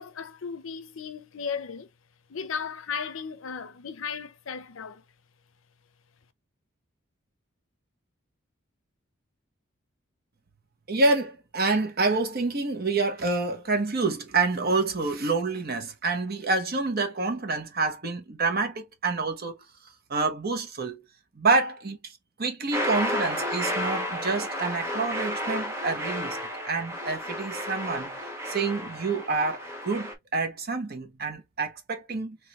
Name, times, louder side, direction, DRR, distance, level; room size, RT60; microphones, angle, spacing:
voice 1, 0.0-1.9 2.3-5.0, left 6 dB, 80° left, 0.6 m, -35 dB
voice 2, 10.9-19.5 20.1-21.0 21.3-26.4 26.6-28.1 28.5-32.4, right 3 dB, 50° right, 1.1 m, -27 dB
sound 1, 22.7-30.1, equal, 15° right, 1.3 m, -32 dB
3.7 x 3.1 x 3.0 m
head